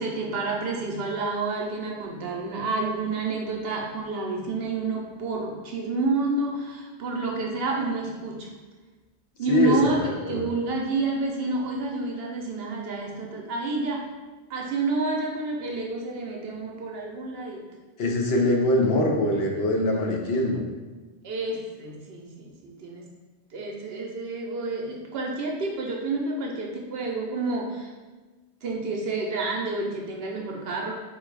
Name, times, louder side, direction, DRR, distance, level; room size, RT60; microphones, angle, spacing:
voice 1, 0.0-8.5 9.4-14.1 14.5-17.6 21.2-23.0 23.5-27.9 28.6-30.9, right 3 dB, 65° right, -1 dB, 0.9 m, -29 dB
voice 2, 9.5-10.5 18.0-20.6, left 1 dB, 65° left, 0 dB, 0.9 m, -23 dB
3.8 x 2.3 x 4.6 m, 1.3 s
omnidirectional pair, 1.1 m